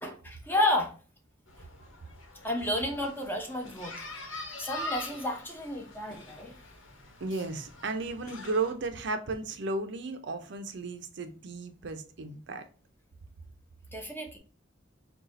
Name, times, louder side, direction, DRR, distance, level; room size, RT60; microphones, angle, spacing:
voice 1, 0.0-0.9 2.4-4.0 4.6-6.5 13.9-14.4, left 1 dB, 10° left, 0.8 m, -31 dB
sound 1, 1.5-8.7, left 2 dB, 85° left, 1.1 m, -44 dB
voice 2, 7.2-12.6, right 3 dB, 60° right, 0.5 m, -34 dB
4.0 x 2.4 x 3.9 m
head